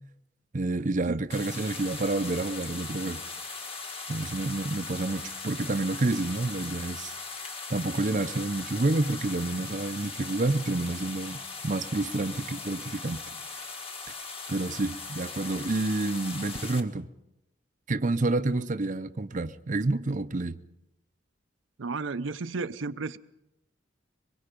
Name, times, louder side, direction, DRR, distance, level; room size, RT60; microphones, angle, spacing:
voice 1, 0.5-3.2 4.1-7.1 7.7-13.2 14.5-17.1 17.9-20.6, right 2 dB, 40° right, 0.6 m, -29 dB
sound 1, 1.3-16.8, left 4 dB, 30° left, 1.7 m, -39 dB
voice 2, 21.8-23.2, right 4 dB, 80° right, 0.6 m, -33 dB
24.0 x 21.5 x 5.2 m
head